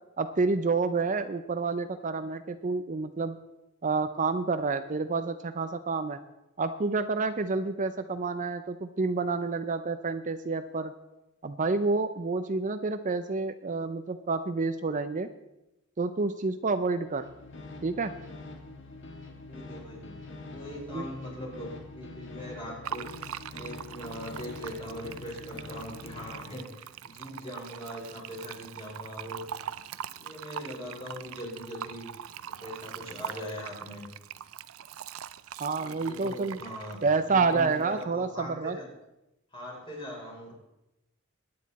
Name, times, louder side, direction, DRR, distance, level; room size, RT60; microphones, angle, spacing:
voice 1, 0.2-3.3 3.8-6.2 6.6-10.9 11.4-15.3 16.0-17.3 17.8-18.1 20.9-21.1 35.6-36.6 37.0-38.8, right 4 dB, 40° right, 10 dB, 0.6 m, -29 dB
sound 1, 17.0-26.6, left 2 dB, 60° left, 1.6 m, -45 dB
voice 2, 19.5-29.4 30.0-32.1 32.4-34.1 35.7-38.9 39.5-40.5, equal, 25° left, -2 dB, 4.7 m, -41 dB
Fill (with liquid), 22.8-38.0, right 9 dB, 85° right, 0.5 m, -42 dB
21.5 x 9.6 x 4.1 m, 0.93 s
head